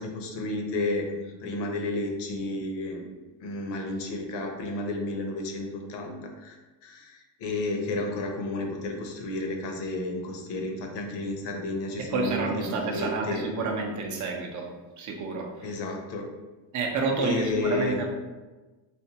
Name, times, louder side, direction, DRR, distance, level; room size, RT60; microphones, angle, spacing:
voice 1, 0.0-3.1 3.4-6.5 6.8-13.4 15.6-16.3 17.2-18.0, left 2 dB, 65° left, 2 dB, 0.7 m, -32 dB
voice 2, 12.1-15.7 16.7-18.1, right 3 dB, 40° right, 1 dB, 0.5 m, -29 dB
4.2 x 2.1 x 2.8 m, 1.2 s
cardioid pair, 165°, 45 cm